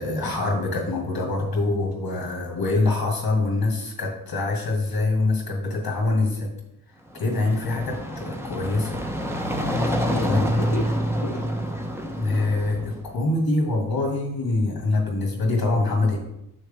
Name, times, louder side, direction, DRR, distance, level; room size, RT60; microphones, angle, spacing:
voice 1, 0.0-6.5 7.1-9.0 9.8-9.9 10.3-10.5 12.2-16.2, left 2 dB, 90° left, 1 dB, 2.1 m, -24 dB
sound 1, 7.1-13.1, equal, 5° right, 0.9 m, -27 dB
voice 2, 9.6-11.5 15.9-16.1, left 2 dB, 70° left, -3 dB, 1.1 m, -34 dB
7.4 x 6.4 x 3.6 m, 0.82 s
wide cardioid pair, 75°, 36 cm